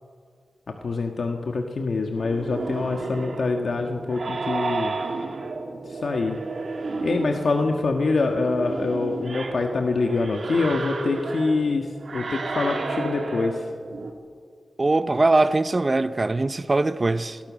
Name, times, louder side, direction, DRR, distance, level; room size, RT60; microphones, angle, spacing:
voice 1, 0.8-4.9 6.0-6.4 7.0-11.8 12.1-13.5, left 3 dB, 70° left, 1.7 m, -25 dB
sound 1, 2.2-14.1, right 3 dB, 65° right, 2.7 m, -32 dB
voice 2, 14.8-17.4, right 2 dB, 30° right, 0.9 m, -21 dB
29.5 x 20.0 x 6.4 m
wide cardioid pair, 105°, 0 cm